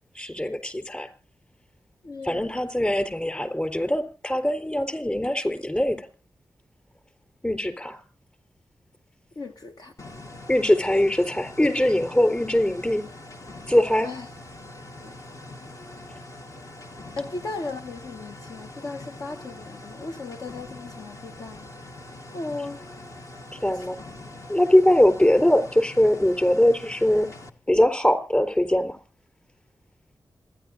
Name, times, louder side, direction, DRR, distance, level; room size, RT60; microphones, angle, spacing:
voice 1, 0.1-1.1 2.2-6.1 7.4-8.0 10.5-13.1 13.7-14.1 23.6-24.0 24.5-27.3 27.7-29.0, left 1 dB, 20° left, 4.1 m, -22 dB
voice 2, 2.0-2.5 9.4-9.9 14.0-14.3 15.0-15.1 17.2-21.6 22.3-22.8, left 3 dB, 65° left, 1.3 m, -36 dB
sound 1, 10.0-27.5, left 2 dB, 45° left, 1.4 m, -43 dB
26.5 x 10.5 x 2.6 m
cardioid pair, 50°, 7 cm